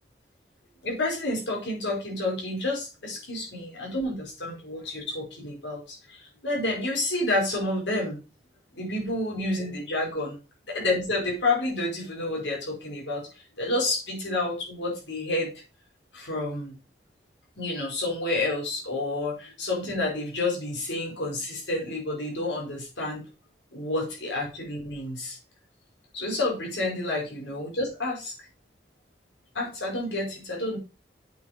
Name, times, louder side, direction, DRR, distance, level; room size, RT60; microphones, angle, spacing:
voice 1, 0.8-8.2 8.7-10.4 10.7-13.3 13.6-15.5 16.1-16.8 17.6-23.2 23.7-25.4 26.1-28.3 29.5-30.8, left 2 dB, 85° left, -2 dB, 4.8 m, -29 dB
8.4 x 6.3 x 5.1 m, 0.32 s
head